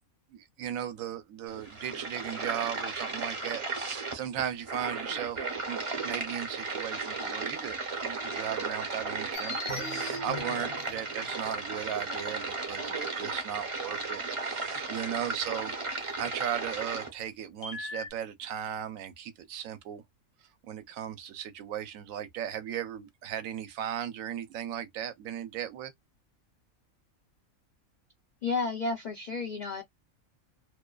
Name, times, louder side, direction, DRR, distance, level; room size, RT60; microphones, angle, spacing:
voice 1, 0.3-5.4 5.7-15.7 16.2-20.0 20.7-25.9, right 9 dB, 75° right, 1.0 m, -37 dB
sound 1, 1.5-17.1, right 3 dB, 35° right, 0.5 m, -35 dB
sound 2, 9.3-11.6 12.1-12.2 15.5-15.6 15.9-16.2 17.6-18.1, left 3 dB, 65° left, 0.9 m, -40 dB
voice 2, 28.4-29.8, left 3 dB, 90° left, 0.4 m, -31 dB
2.5 x 2.2 x 2.2 m
omnidirectional pair, 1.5 m